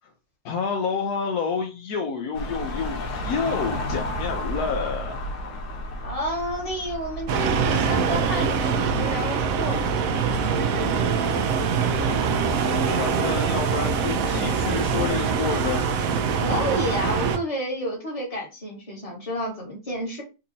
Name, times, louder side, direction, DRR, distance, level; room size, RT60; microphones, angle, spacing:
voice 1, 0.4-5.2 12.8-15.8, left 5 dB, 75° left, 1.1 m, -29 dB
sound 1, 2.3-8.8, left 1 dB, 90° left, 1.4 m, -32 dB
voice 2, 6.0-10.2 16.4-20.2, equal, 25° left, 1.6 m, -30 dB
sound 2, 7.3-17.4, right 5 dB, 70° right, 0.9 m, -23 dB
4.0 x 2.7 x 2.7 m
omnidirectional pair, 1.7 m